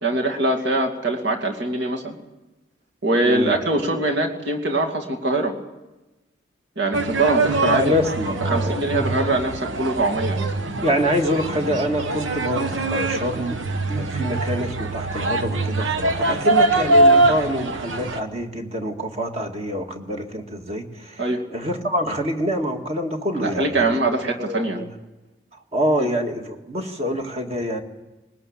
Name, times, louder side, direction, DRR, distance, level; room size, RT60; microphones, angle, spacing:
voice 1, 0.0-2.1 3.0-5.6 6.8-7.9 8.4-10.9 21.2-21.4 23.4-24.8 26.0-26.1, right 2 dB, 65° right, 2 dB, 2.6 m, -23 dB
voice 2, 3.2-3.6 7.7-9.3 10.8-13.6 13.9-21.2 21.5-24.0 24.4-24.9 25.7-27.8, equal, 35° right, 3 dB, 2.1 m, -26 dB
sound 1, 6.9-18.2, right 2 dB, 80° right, 1.2 m, -23 dB
20.5 x 19.5 x 8.8 m, 1.1 s
head